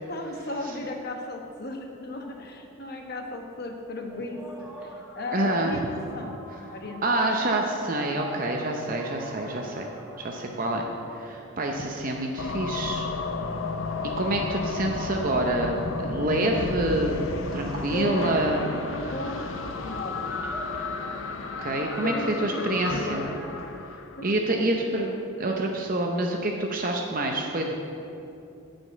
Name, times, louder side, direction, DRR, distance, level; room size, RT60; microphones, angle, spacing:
voice 1, 0.1-6.4 6.7-7.0 7.3-7.5 14.4-14.5 14.7-14.9 17.9-18.6 19.1-20.4 22.0-22.6 22.9-23.3 24.2-24.3, left 1 dB, 45° left, 3 dB, 1.0 m, -35 dB
sound 1, 4.1-12.9 13.6-15.3 16.5-16.6 16.8-23.5, right 1 dB, 10° right, 1.1 m, -44 dB
voice 2, 5.3-5.7 7.0-9.9 10.2-10.9 11.1-13.1 14.2-18.7 21.6-22.1 22.4-23.3 24.2-27.7, right 1 dB, 40° right, 1 dB, 0.7 m, -27 dB
sound 2, 12.4-24.4, left 4 dB, 65° left, 0.5 m, -33 dB
9.6 x 5.2 x 7.3 m, 2.8 s
head